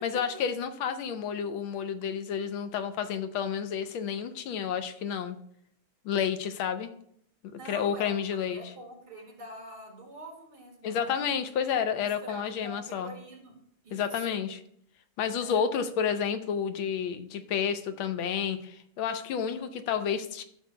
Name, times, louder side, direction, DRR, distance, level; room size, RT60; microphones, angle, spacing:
voice 1, 0.0-5.4 6.0-6.9 7.7-8.6 10.8-13.1 13.9-14.6 15.2-20.4, left 7 dB, 80° left, 9 dB, 1.4 m, -30 dB
voice 2, 7.5-8.1 8.5-11.1 12.0-13.6 13.8-14.4 15.4-15.7, right 1 dB, 45° right, -1 dB, 2.8 m, -45 dB
13.0 x 6.2 x 2.2 m, 0.67 s
omnidirectional pair, 2.4 m